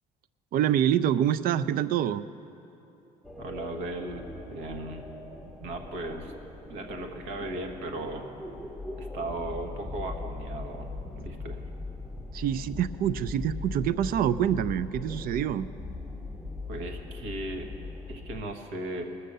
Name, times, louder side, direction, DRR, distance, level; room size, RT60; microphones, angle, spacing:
voice 1, 0.5-2.2 12.3-15.7, right 10 dB, 60° right, 16 dB, 0.4 m, -26 dB
sound 1, 3.2-18.4, left 2 dB, 5° right, 0.7 m, -40 dB
voice 2, 3.4-5.0 5.4-6.3 6.7-8.3 9.0-11.6 16.7-17.7 18.1-19.0, right 1 dB, 90° right, 4 dB, 1.3 m, -37 dB
19.5 x 6.6 x 6.6 m, 2.9 s
cardioid pair, 110°, 17 cm